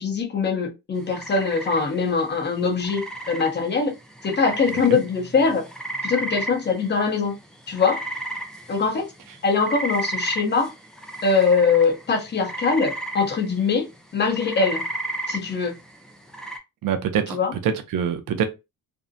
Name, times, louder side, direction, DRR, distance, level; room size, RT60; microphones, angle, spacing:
voice 1, 0.0-3.9 4.2-5.7 6.0-7.3 7.7-8.0 8.7-9.1 9.4-10.7 11.2-13.9 14.1-14.8 15.3-15.7 17.3-17.5, left 5 dB, 30° left, 0.7 m, -22 dB
sound 1, 1.0-16.6, right 2 dB, ahead, 0.3 m, -34 dB
voice 2, 16.8-17.4 17.6-18.4, right 8 dB, 60° right, 0.7 m, -24 dB
2.6 x 2.1 x 2.5 m
cardioid pair, 125°, 36 cm